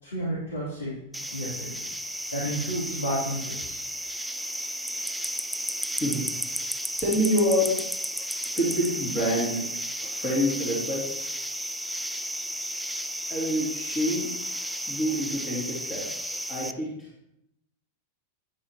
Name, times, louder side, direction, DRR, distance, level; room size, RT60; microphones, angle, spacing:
voice 1, 0.0-1.8 2.3-3.8, right 1 dB, 70° left, -8 dB, 3.6 m, -32 dB
sound 1, 1.1-16.7, equal, ahead, 0.4 m, -33 dB
voice 2, 5.9-6.2 6.5-7.8 8.5-9.6 10.0-11.3 13.3-14.3 14.9-17.1, equal, 30° left, -7 dB, 3.0 m, -27 dB
10.5 x 8.5 x 3.0 m, 0.80 s
figure-of-eight pair, 90°, 0 cm